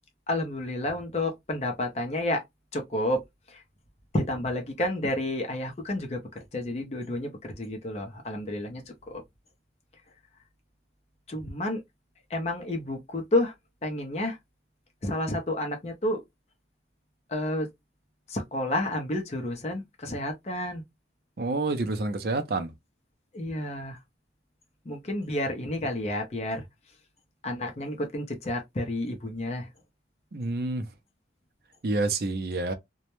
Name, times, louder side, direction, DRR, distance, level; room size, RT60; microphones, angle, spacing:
voice 1, 0.3-2.4 2.7-3.2 3.5-3.6 4.1-6.2 6.5-9.2 11.3-11.8 12.3-13.5 13.8-14.4 15.0-16.2 17.3-17.7 18.3-20.8 23.3-24.0 24.9-26.7 27.4-29.7, left 1 dB, 35° left, 0.5 m, -30 dB
voice 2, 21.4-22.7 30.3-30.8 31.8-32.7, right 2 dB, 60° right, 0.5 m, -28 dB
2.2 x 2.0 x 2.9 m
head